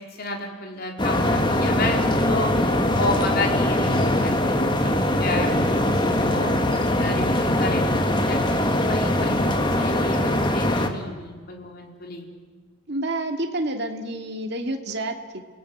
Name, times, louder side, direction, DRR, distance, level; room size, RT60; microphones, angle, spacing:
voice 1, 0.2-2.5 2.9-6.6 7.0-9.5 9.8-12.3, left 2 dB, 45° left, 1 dB, 4.2 m, -31 dB
sound 1, 1.0-10.9, left 1 dB, 20° left, 1.9 m, -22 dB
voice 2, 12.9-15.4, right 1 dB, 50° right, 4 dB, 2.3 m, -29 dB
29.5 x 18.0 x 9.4 m, 1.6 s
head